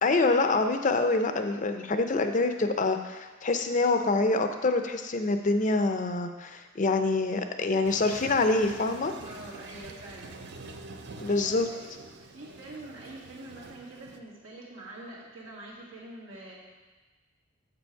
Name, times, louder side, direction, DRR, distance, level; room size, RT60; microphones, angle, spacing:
voice 1, 0.0-9.1 11.2-11.7, left 3 dB, 40° left, 7 dB, 0.6 m, -26 dB
Toilet flush, 7.8-14.2, right 3 dB, 55° right, 0.6 m, -46 dB
voice 2, 9.3-10.4 11.4-11.8 12.3-16.7, right 1 dB, 90° right, -5 dB, 1.9 m, -45 dB
7.3 x 6.9 x 4.6 m, 1.3 s
head